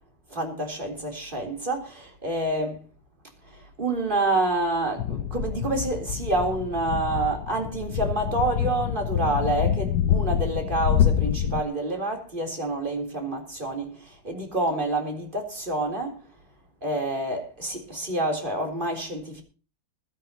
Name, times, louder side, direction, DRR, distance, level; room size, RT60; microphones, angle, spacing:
voice 1, 0.3-2.8 3.5-16.2 16.8-19.4, right 2 dB, 25° right, 3.8 m, -28 dB
sound 1, 5.0-11.6, left 9 dB, 70° left, 1.4 m, -26 dB
21.5 x 12.5 x 2.9 m
omnidirectional pair, 2.1 m